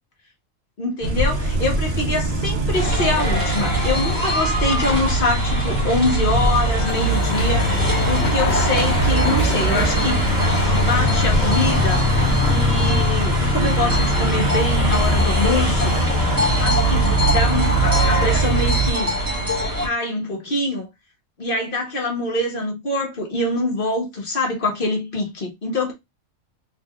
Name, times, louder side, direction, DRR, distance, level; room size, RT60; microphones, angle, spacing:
voice 1, 0.8-10.3 10.6-12.1 12.5-16.0 16.6-19.1 19.8-20.9 21.4-25.9, left 2 dB, 40° left, 1.4 m, -25 dB
sound 1, 1.0-18.9, right 1 dB, 50° right, 1.1 m, -22 dB
sound 2, 2.7-19.9, equal, 15° right, 1.6 m, -23 dB
sound 3, 6.3-12.7, left 3 dB, 75° left, 1.9 m, -29 dB
4.0 x 3.3 x 2.4 m
omnidirectional pair, 1.4 m